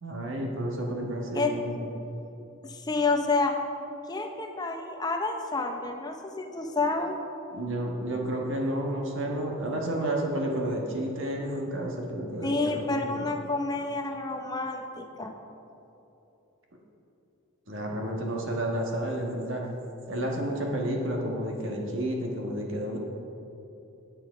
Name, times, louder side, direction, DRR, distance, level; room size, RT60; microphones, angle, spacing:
voice 1, 0.0-1.8 7.5-13.2 17.7-19.6 20.1-23.0, right 1 dB, 60° right, 0 dB, 1.4 m, -31 dB
voice 2, 2.6-3.5 4.1-7.2 12.4-15.3, left 3 dB, 20° left, 4 dB, 0.6 m, -29 dB
9.2 x 8.9 x 4.9 m, 2.9 s
head